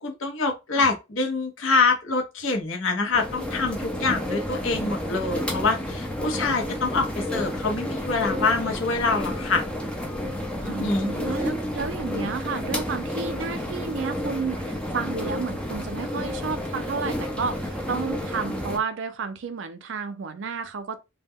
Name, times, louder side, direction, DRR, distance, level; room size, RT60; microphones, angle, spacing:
voice 1, 0.0-9.7 10.6-11.1, left 3 dB, 75° left, 0.7 m, -25 dB
sound 1, 3.1-18.8, left 1 dB, 5° left, 0.3 m, -30 dB
voice 2, 10.6-21.0, right 5 dB, 65° right, 0.4 m, -32 dB
2.2 x 2.1 x 3.4 m
head